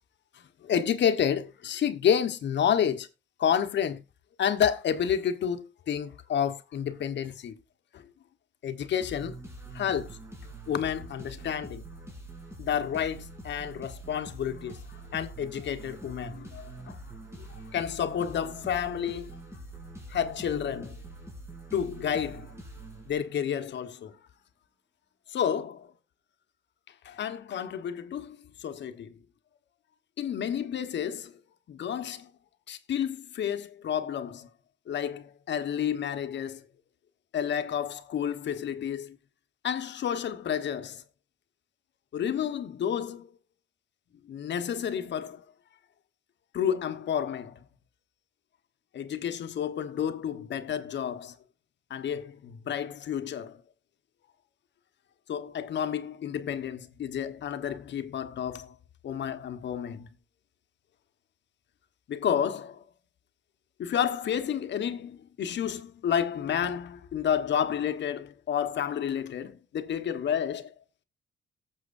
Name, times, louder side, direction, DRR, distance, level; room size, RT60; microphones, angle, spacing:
voice 1, 0.6-3.1 3.4-4.0 4.4-7.6 7.9-8.0 8.6-9.4 9.7-10.1 10.7-11.8 12.6-14.8 15.1-17.0 17.5-19.4 20.1-21.0 21.7-22.5 23.1-24.2 25.3-25.9 27.0-29.1 30.2-31.3 31.7-32.3 32.7-34.5 34.9-36.6 37.3-39.2 39.6-41.0 42.1-43.3 44.2-45.4 46.5-47.6 48.9-51.4 51.9-53.6 55.3-58.7 59.0-60.1 62.1-62.8 63.8-70.7, left 8 dB, 65° left, 1.2 m, -30 dB
sound 1, 9.0-23.6, right 2 dB, 15° right, 3.5 m, -45 dB
18.5 x 7.5 x 2.6 m
cardioid pair, 90°, 20 cm